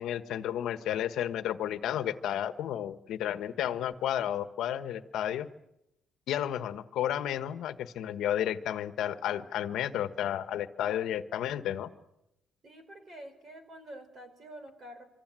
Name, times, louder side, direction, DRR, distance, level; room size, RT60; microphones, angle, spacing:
voice 1, 0.0-5.5 6.3-11.9, left 11 dB, 70° left, 11 dB, 1.4 m, -32 dB
voice 2, 12.6-15.0, right 1 dB, 30° right, 10 dB, 4.5 m, -47 dB
26.0 x 25.5 x 7.7 m, 0.89 s
cardioid pair, 165°, 0 cm